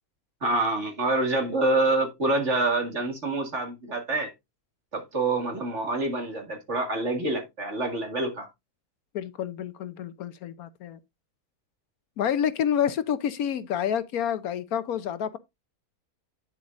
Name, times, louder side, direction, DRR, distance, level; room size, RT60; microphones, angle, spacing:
voice 1, 0.4-4.3 4.9-8.5, right 2 dB, 50° right, 2.5 m, -26 dB
voice 2, 9.1-11.0 12.2-15.4, left 9 dB, 70° left, 1.2 m, -28 dB
9.2 x 7.1 x 2.5 m
omnidirectional pair, 1.6 m